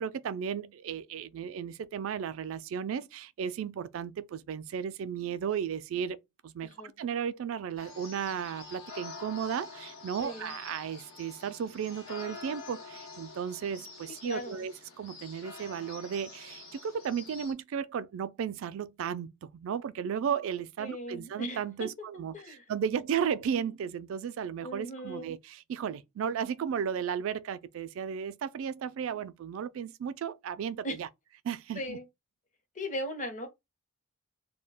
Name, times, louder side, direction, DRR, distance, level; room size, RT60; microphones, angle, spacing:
voice 1, 0.0-6.2 6.4-6.7 7.0-31.1 31.4-32.0, right 7 dB, 65° right, 0.3 m, -34 dB
voice 2, 6.6-6.9 10.2-10.5 14.2-14.6 20.8-21.9 22.3-22.6 24.6-25.3 30.8-31.0 31.7-32.0 32.8-33.5, equal, 35° left, 0.7 m, -38 dB
sound 1, 7.8-17.5, left 4 dB, 85° left, 1.1 m, -47 dB
2.2 x 2.2 x 3.3 m
head